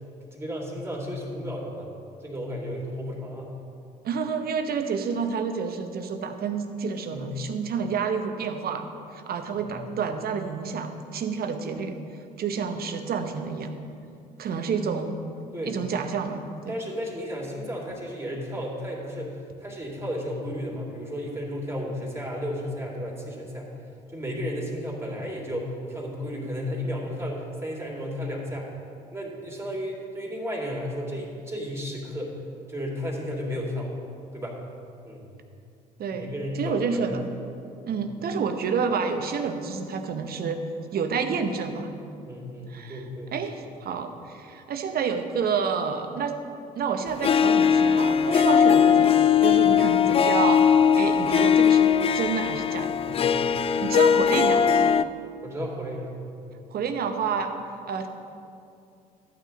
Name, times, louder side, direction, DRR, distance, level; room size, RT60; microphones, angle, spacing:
voice 1, 0.2-1.9 2.2-3.5 7.1-7.3 9.6-9.7 15.5-15.8 16.7-23.7 24.1-28.7 29.1-32.4 32.7-33.9 34.3-34.6 35.0-35.2 36.1-37.1 37.9-38.0 42.2-43.3 49.5-49.6 53.0-53.5 55.4-56.2 56.4-56.6, equal, 10° right, -2 dB, 2.8 m, -33 dB
voice 2, 4.0-12.0 12.4-13.7 14.4-15.2 15.6-16.7 36.0-36.3 36.6-37.3 37.8-40.6 40.9-41.9 42.7-43.0 43.3-46.4 46.8-49.2 49.4-52.9 53.8-54.8 56.7-57.5 57.8-58.1, right 5 dB, 45° right, 7 dB, 1.0 m, -29 dB
Harp, 47.2-55.0, left 7 dB, 30° left, 0.4 m, -20 dB
13.0 x 9.0 x 3.9 m, 2.5 s
figure-of-eight pair, 50°, 21 cm